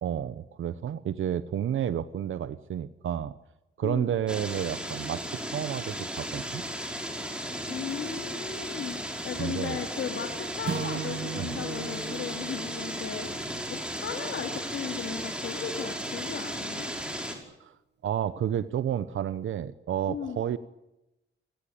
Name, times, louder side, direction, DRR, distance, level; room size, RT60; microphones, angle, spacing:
voice 1, 0.0-3.3 3.8-5.2 5.5-6.6 9.4-9.8 11.4-11.6 17.3-17.8 18.0-20.6, right 9 dB, 85° right, 13 dB, 1.0 m, -31 dB
sound 1, 4.3-17.4, equal, 5° right, 5.4 m, -35 dB
voice 2, 7.7-13.3 13.7-16.9 20.1-20.4, left 7 dB, 80° left, 4 dB, 2.9 m, -36 dB
Acoustic guitar / Strum, 10.6-14.9, right 8 dB, 60° right, 1.6 m, -39 dB
28.5 x 19.0 x 8.7 m, 0.92 s
wide cardioid pair, 115°, 20 cm